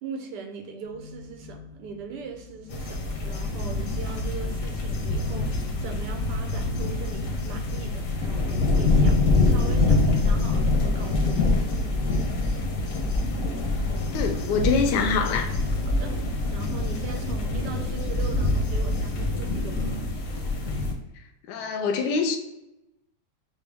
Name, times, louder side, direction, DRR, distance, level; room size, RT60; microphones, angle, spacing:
voice 1, 0.0-11.5 12.3-12.4 15.8-16.1 16.5-19.9, right 4 dB, 80° right, 1.3 m, -39 dB
sound 1, 0.8-10.2, left 2 dB, 50° right, 0.6 m, -44 dB
sound 2, 2.7-20.9, left 2 dB, 60° left, 0.9 m, -25 dB
voice 2, 14.1-15.5 21.4-22.4, left 5 dB, 80° left, 1.2 m, -24 dB
6.0 x 2.0 x 3.3 m
omnidirectional pair, 1.8 m